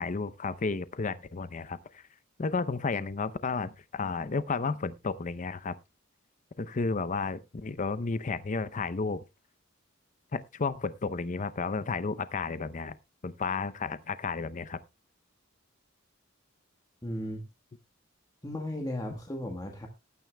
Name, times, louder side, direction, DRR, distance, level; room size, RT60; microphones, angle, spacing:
voice 1, 0.0-2.0 2.4-5.7 6.6-9.2 10.3-13.0 13.2-14.8, left 4 dB, 40° left, 0.6 m, -32 dB
voice 2, 17.0-17.4 18.4-19.9, left 1 dB, 20° left, 1.3 m, -35 dB
18.5 x 9.2 x 2.2 m
head